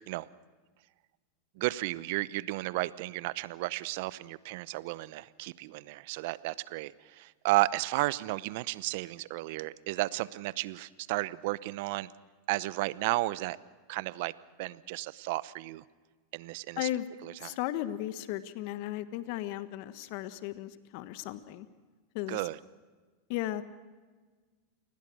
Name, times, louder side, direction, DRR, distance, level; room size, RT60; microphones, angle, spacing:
voice 1, 1.6-12.1 12.5-13.6 13.9-14.3 14.6-15.8 16.3-16.9 17.2-17.6 22.3-22.6, right 19 dB, 60° right, 18 dB, 0.8 m, -33 dB
voice 2, 17.4-21.7 22.1-22.4 23.3-23.6, left 14 dB, 60° left, 12 dB, 1.3 m, -35 dB
29.0 x 20.0 x 6.3 m, 1.4 s
hypercardioid pair, 95°, 0 cm